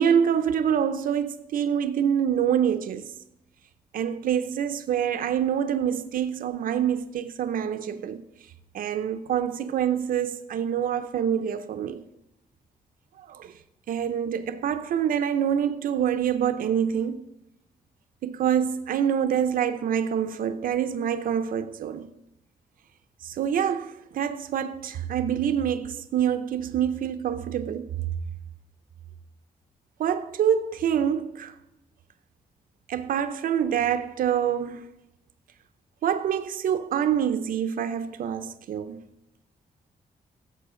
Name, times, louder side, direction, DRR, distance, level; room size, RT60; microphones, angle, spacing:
voice 1, 0.0-3.1 3.9-8.3 8.7-12.1 13.2-13.5 13.9-17.3 18.2-22.1 23.2-27.9 30.0-31.6 32.9-34.9 36.0-39.0, right 8 dB, 75° right, 0.5 m, -26 dB
14.5 x 6.9 x 3.7 m
wide cardioid pair, 175°, 14 cm